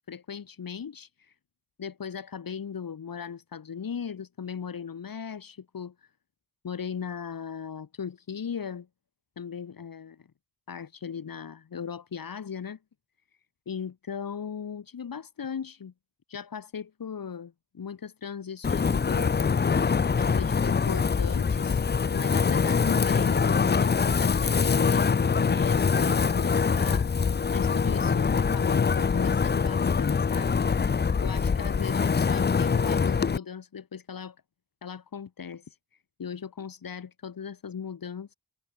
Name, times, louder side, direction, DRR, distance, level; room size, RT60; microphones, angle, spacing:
voice 1, 0.1-1.3 1.8-5.9 6.6-8.9 9.4-10.3 10.7-12.8 13.7-15.9 16.3-19.4 20.2-21.8 22.1-27.1 27.5-30.6 31.2-34.4 34.8-35.8 36.2-38.3, left 7 dB, 80° left, 2.3 m, -38 dB
Wind, 18.6-33.4, left 5 dB, 30° left, 0.5 m, -24 dB
wide cardioid pair, 80°, 34 cm